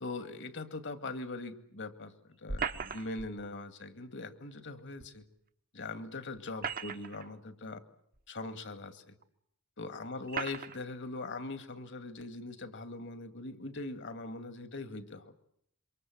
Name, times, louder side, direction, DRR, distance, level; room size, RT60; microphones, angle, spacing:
voice 1, 0.0-5.2 5.7-7.8 8.3-9.1 9.8-15.3, left 2 dB, 55° left, 10 dB, 2.1 m, -41 dB
sound 1, 2.5-3.3 5.0-5.1 6.3-7.3 8.1-8.2 9.2-9.3 10.3-10.8, right 6 dB, 45° right, 1.2 m, -37 dB
27.5 x 24.5 x 7.8 m, 0.71 s
head